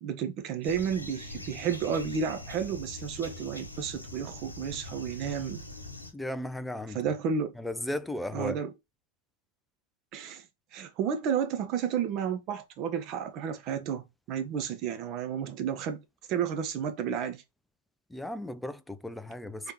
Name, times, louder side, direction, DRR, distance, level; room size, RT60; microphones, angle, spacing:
voice 1, 0.0-5.6 6.9-7.5 8.3-8.7 10.1-10.4 10.7-16.0 16.3-17.4 19.6-19.7, right 7 dB, 35° right, 0.8 m, -32 dB
sound 1, 0.6-6.1, left 1 dB, 85° left, 1.2 m, -43 dB
voice 2, 6.1-7.0 7.6-8.6 18.1-19.7, left 1 dB, 5° left, 0.3 m, -35 dB
4.4 x 3.4 x 2.8 m
figure-of-eight pair, 100°, 0 cm